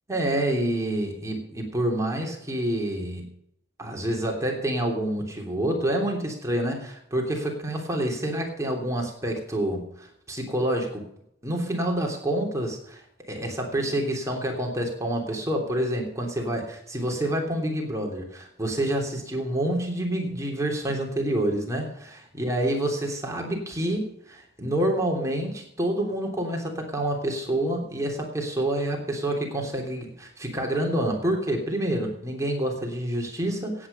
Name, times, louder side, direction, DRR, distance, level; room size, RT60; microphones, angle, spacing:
voice 1, 0.1-3.3 3.8-11.0 11.4-13.0 13.3-33.9, right 1 dB, 15° right, 0 dB, 3.2 m, -28 dB
16.5 x 8.9 x 5.5 m, 0.73 s
head